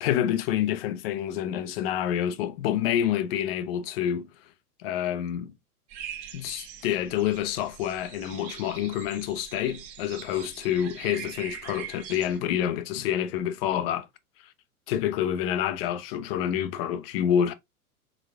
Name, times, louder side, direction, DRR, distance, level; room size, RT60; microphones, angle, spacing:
voice 1, 0.0-4.3 4.8-5.5 6.3-14.1 14.9-17.5, left 10 dB, 40° left, 0.7 m, -28 dB
sound 1, 5.9-12.4, right 9 dB, 30° right, 1.0 m, -43 dB
4.1 x 4.0 x 2.3 m
figure-of-eight pair, 100°, 45 cm